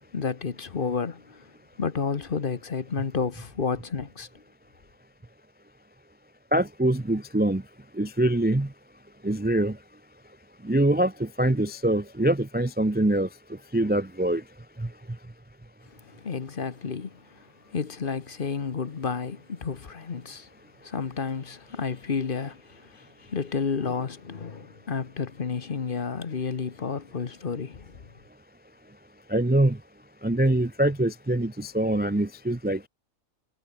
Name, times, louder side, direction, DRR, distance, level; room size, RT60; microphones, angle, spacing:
voice 1, 0.1-1.4 1.8-4.3 16.1-17.2 17.7-20.5 20.8-28.0, left 5 dB, 40° left, 1.2 m, -31 dB
voice 2, 6.5-7.6 8.0-8.7 9.2-9.8 10.6-13.3 13.7-14.4 14.8-14.9 29.3-29.8 30.2-32.9, right 1 dB, 15° right, 0.3 m, -24 dB
omnidirectional pair, 1.5 m